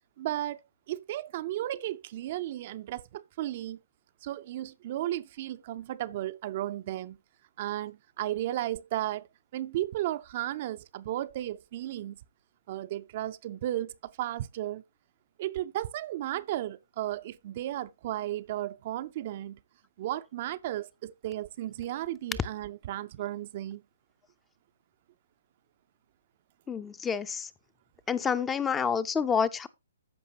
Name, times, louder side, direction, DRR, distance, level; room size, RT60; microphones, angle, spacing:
voice 1, 0.2-0.6 0.9-3.8 4.2-7.2 7.6-9.3 9.5-12.2 12.7-14.8 15.4-19.6 20.0-23.8, right 14 dB, 45° right, 0.4 m, -34 dB
voice 2, 26.7-27.5 28.1-29.7, left 6 dB, 15° left, 0.5 m, -28 dB
14.0 x 5.2 x 2.8 m
hypercardioid pair, 135°, 0 cm